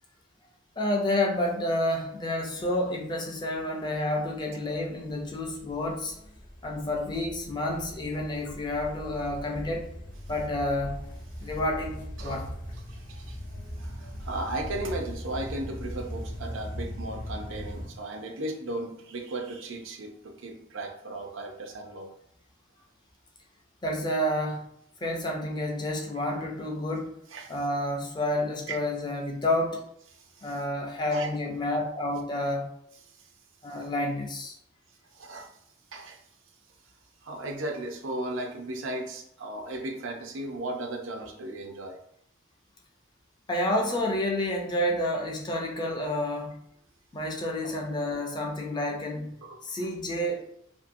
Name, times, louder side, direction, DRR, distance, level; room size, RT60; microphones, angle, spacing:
voice 1, 0.8-6.1 6.6-9.9 10.3-11.0 11.4-12.5 23.8-24.7 25.0-27.1 27.5-29.8 30.4-32.7 33.6-34.6 43.5-46.6 47.1-49.3 49.6-50.5, left 1 dB, 20° left, 0 dB, 0.4 m, -29 dB
sound 1, 2.4-17.9, equal, 45° left, 0.7 m, -40 dB
voice 2, 12.9-13.5 13.8-22.1 27.3-27.5 28.7-28.8 30.1-30.6 31.1-31.3 33.1-33.3 35.1-35.6 35.9-36.2 37.2-42.0 47.6-47.7 49.4-49.6 49.8-49.9, right 2 dB, 90° right, 3 dB, 0.5 m, -36 dB
2.7 x 2.6 x 2.5 m, 0.71 s
head